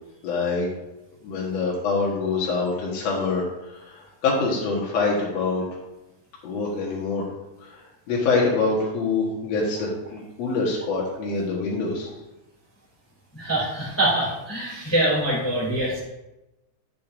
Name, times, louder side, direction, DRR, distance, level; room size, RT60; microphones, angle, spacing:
voice 1, 0.2-0.7 1.2-5.6 6.4-7.3 7.6-12.1, left 3 dB, 60° left, -5 dB, 2.4 m, -25 dB
voice 2, 13.3-16.0, right 1 dB, 5° left, -7 dB, 2.4 m, -24 dB
10.5 x 6.9 x 2.6 m, 0.98 s
omnidirectional pair, 3.5 m